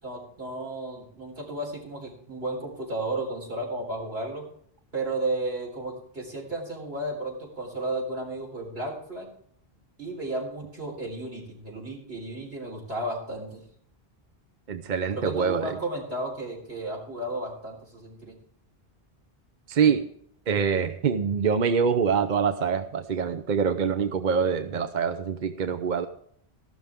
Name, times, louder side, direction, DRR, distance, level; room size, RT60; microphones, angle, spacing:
voice 1, 0.0-4.5 4.9-9.3 10.0-13.6 15.1-18.4, right 2 dB, 75° right, -1 dB, 4.4 m, -33 dB
voice 2, 14.7-15.8 19.7-20.0 20.5-26.1, right 6 dB, 50° right, 8 dB, 0.8 m, -25 dB
15.0 x 12.5 x 3.6 m, 0.64 s
omnidirectional pair, 1.0 m